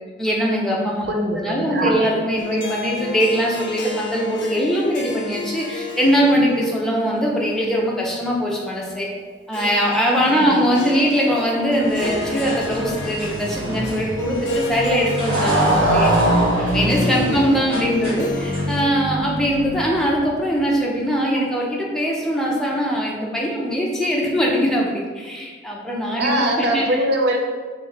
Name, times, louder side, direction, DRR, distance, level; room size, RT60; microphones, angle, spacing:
voice 1, 0.2-1.1 1.4-9.1 9.5-16.1 16.6-26.8, equal, 5° left, -4 dB, 0.5 m, -21 dB
voice 2, 1.1-2.1 10.2-10.6 17.2-17.5 26.2-27.4, right 1 dB, 55° right, 2 dB, 0.5 m, -23 dB
Harp, 2.4-18.8, left 3 dB, 60° left, 0.4 m, -33 dB
sound 1, 11.8-18.8, equal, 25° right, 1.2 m, -35 dB
Motorcycle, 12.1-20.2, right 1 dB, 90° right, 0.8 m, -23 dB
3.1 x 2.5 x 3.9 m, 1.5 s
head